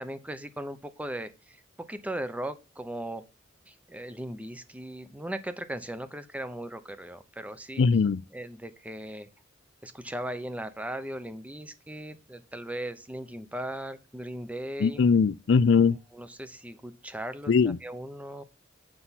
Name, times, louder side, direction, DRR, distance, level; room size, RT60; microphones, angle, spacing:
voice 1, 0.0-1.6 1.9-3.2 3.7-7.8 8.3-9.3 9.8-15.0 16.1-18.4, right 1 dB, 10° right, 0.7 m, -38 dB
voice 2, 7.8-8.2 14.8-16.0 17.5-17.8, left 5 dB, 75° left, 0.4 m, -21 dB
7.7 x 5.8 x 4.0 m
head